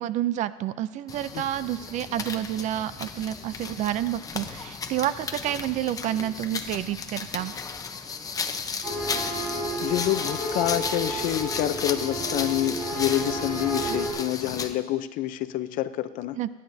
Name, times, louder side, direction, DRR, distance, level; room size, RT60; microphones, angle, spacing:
voice 1, 0.0-7.5 13.9-14.0 16.4-16.5, right 12 dB, 55° right, 15 dB, 0.4 m, -29 dB
sound 1, 1.1-14.8, left 5 dB, 25° left, 0.8 m, -34 dB
sound 2, 8.8-14.1, right 1 dB, 10° right, 4.8 m, -32 dB
voice 2, 9.8-16.4, left 14 dB, 70° left, 12 dB, 0.6 m, -27 dB
25.0 x 10.0 x 2.7 m, 1.3 s
cardioid pair, 135°, 15 cm